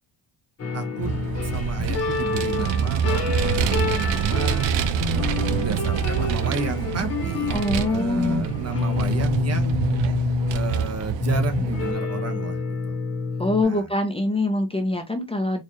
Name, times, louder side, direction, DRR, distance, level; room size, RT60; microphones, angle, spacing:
sound 1, 0.6-13.6, left 4 dB, 35° left, 1.0 m, -28 dB
voice 1, 0.7-4.7 5.5-9.8 10.5-13.0 13.6-13.9, right 5 dB, 35° right, 0.7 m, -32 dB
Vehicle, 1.0-11.9, right 7 dB, 90° right, 0.6 m, -26 dB
voice 2, 7.5-8.4 13.4-15.6, left 2 dB, 15° left, 0.5 m, -24 dB
4.5 x 2.4 x 3.0 m
cardioid pair, 135°, 43 cm